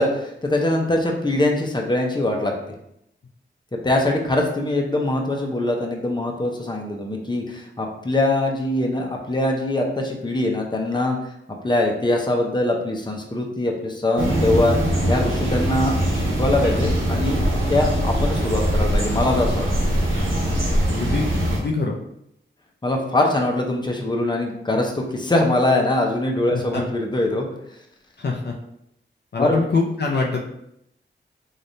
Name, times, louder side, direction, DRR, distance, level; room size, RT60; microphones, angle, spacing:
voice 1, 0.0-2.5 3.8-11.2 11.6-14.7 15.1-17.4 17.7-19.7 22.8-27.5 29.4-29.6, left 1 dB, 20° left, 1 dB, 0.8 m, -22 dB
sound 1, 14.2-21.6, right 1 dB, 85° right, 0.9 m, -22 dB
voice 2, 20.9-21.9 26.5-26.8 28.2-28.6 29.3-30.4, left 3 dB, 60° left, 0 dB, 0.6 m, -24 dB
3.8 x 3.5 x 2.7 m, 0.77 s
cardioid pair, 50°, 20 cm